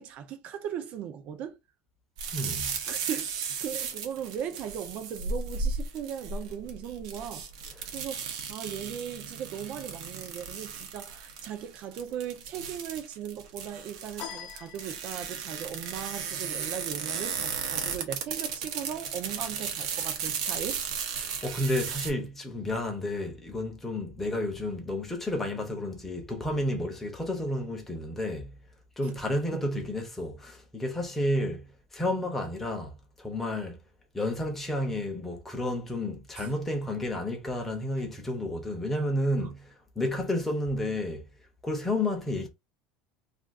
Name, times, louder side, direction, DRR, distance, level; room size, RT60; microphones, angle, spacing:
voice 1, 0.0-1.6 2.9-7.5 7.9-20.8 29.0-29.1 29.5-29.7 32.2-32.3 36.4-36.5, right 9 dB, 40° right, 0.5 m, -38 dB
sound 1, 2.2-22.1, right 6 dB, 85° right, 0.8 m, -35 dB
voice 2, 2.3-2.8 7.8-7.9 21.2-28.5 29.0-31.7 31.9-33.8 34.1-41.3 41.6-42.5, left 1 dB, 5° left, 0.7 m, -31 dB
sound 2, 14.2-15.5, left 9 dB, 50° left, 0.8 m, -43 dB
2.5 x 2.4 x 3.5 m
cardioid pair, 165°, 3 cm